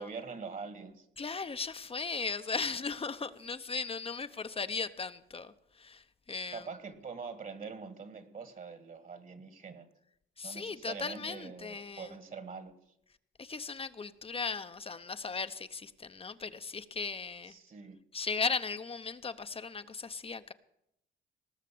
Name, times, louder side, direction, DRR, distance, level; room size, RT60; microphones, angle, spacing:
voice 1, 0.0-1.1 6.5-9.9 10.4-12.7 17.5-18.0, right 5 dB, 45° right, 1.8 m, -44 dB
voice 2, 1.2-6.7 10.4-12.1 13.4-17.5 18.1-20.5, left 4 dB, 30° left, 0.8 m, -37 dB
19.0 x 6.6 x 8.5 m
cardioid pair, 90°, 20 cm